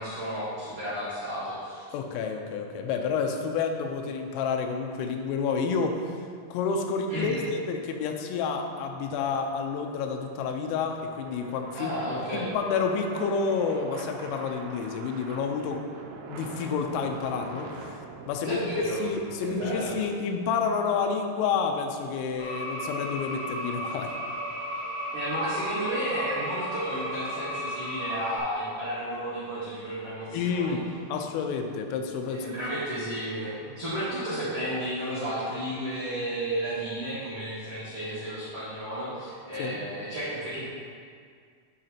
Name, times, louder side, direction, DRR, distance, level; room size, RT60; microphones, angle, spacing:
voice 1, 0.0-1.8 7.1-7.5 11.8-12.5 18.4-19.0 19.4-20.0 25.1-30.8 32.3-40.7, right 1 dB, 70° right, -13 dB, 1.4 m, -32 dB
voice 2, 1.9-6.1 6.5-11.9 12.3-15.9 16.3-18.0 18.3-18.6 19.0-24.2 30.3-32.5 39.6-39.8, left 5 dB, 85° left, 3 dB, 3.1 m, -29 dB
sound 1, 9.6-19.9, right 4 dB, 90° right, 2.7 m, -44 dB
sound 2, 22.4-28.4, equal, 50° right, 2.6 m, -34 dB
8.9 x 6.7 x 2.8 m, 2.1 s
omnidirectional pair, 6.0 m